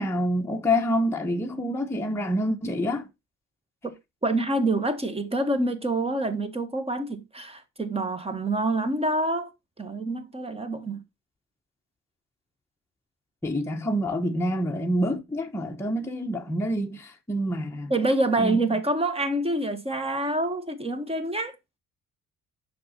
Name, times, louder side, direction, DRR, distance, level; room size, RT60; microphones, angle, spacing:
voice 1, 0.0-3.1 13.4-17.9 18.4-18.6, equal, 10° left, 0.9 m, -27 dB
voice 2, 4.2-9.5 9.8-11.0 17.9-21.5, right 2 dB, 20° right, 1.5 m, -26 dB
6.5 x 5.8 x 4.1 m
cardioid pair, 90°, 30 cm